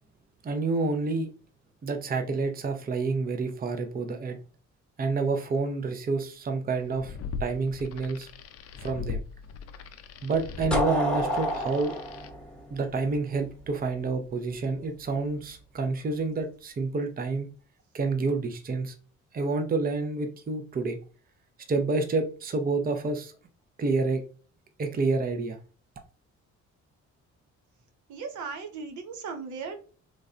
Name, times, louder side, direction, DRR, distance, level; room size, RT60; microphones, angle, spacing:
voice 1, 0.4-1.3 1.8-4.4 5.0-7.1 7.4-8.3 8.8-9.2 10.2-11.9 12.7-17.5 17.9-18.9 19.3-21.0 21.7-23.3 23.8-24.2 24.8-25.6, right 3 dB, 30° right, 6 dB, 0.6 m, -28 dB
sound 1, 6.8-12.3, left 5 dB, 50° left, 0.5 m, -38 dB
sound 2, 10.7-13.5, equal, 5° left, 0.9 m, -29 dB
voice 2, 28.1-29.8, right 5 dB, 75° right, 5 dB, 0.8 m, -37 dB
3.2 x 2.5 x 2.4 m, 0.37 s
cardioid pair, 90°, 30 cm